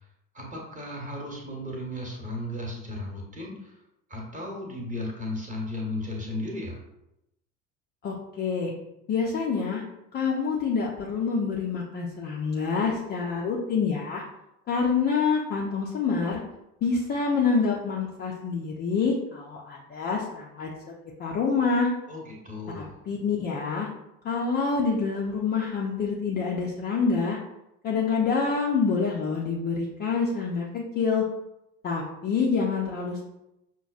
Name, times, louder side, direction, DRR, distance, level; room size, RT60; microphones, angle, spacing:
voice 1, 0.3-3.8 4.1-6.8 22.1-23.0, left 1 dB, 15° right, -1 dB, 1.0 m, -35 dB
voice 2, 8.0-8.7 9.1-9.8 10.1-14.2 14.7-16.4 16.8-20.7 21.2-21.9 22.8-23.9 24.2-27.4 27.8-31.2 31.8-33.2, left 5 dB, 25° left, -3 dB, 0.4 m, -26 dB
5.7 x 2.2 x 2.4 m, 0.88 s
figure-of-eight pair, 65°, 44 cm